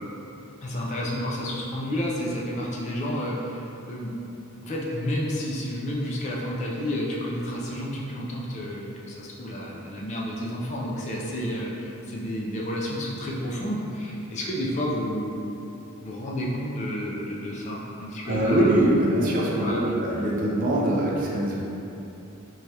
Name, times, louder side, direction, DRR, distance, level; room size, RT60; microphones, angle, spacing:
voice 1, 0.6-4.1 4.6-15.6 16.0-18.7 19.6-19.9, equal, 30° left, -4 dB, 0.3 m, -30 dB
voice 2, 18.2-21.6, right 1 dB, 40° right, -4 dB, 0.4 m, -23 dB
3.2 x 2.3 x 2.7 m, 2.9 s
head